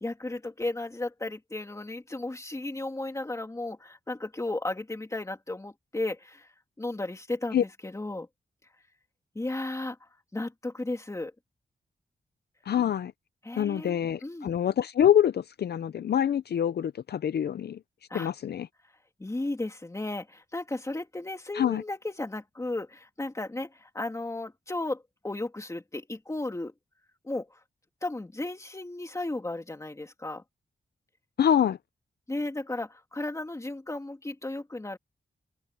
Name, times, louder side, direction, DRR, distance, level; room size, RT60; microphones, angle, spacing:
voice 1, 0.0-6.5 6.8-8.3 9.3-10.0 10.3-11.3 13.4-14.5 18.1-18.3 19.2-26.7 27.2-27.6 28.0-30.4 32.3-35.0, left 2 dB, 15° left, 2.9 m, -34 dB
voice 2, 12.7-13.1 13.6-17.8 18.1-18.7 21.5-21.8 31.4-31.8, left 9 dB, 65° left, 0.5 m, -25 dB
open air
wide cardioid pair, 140°, 18 cm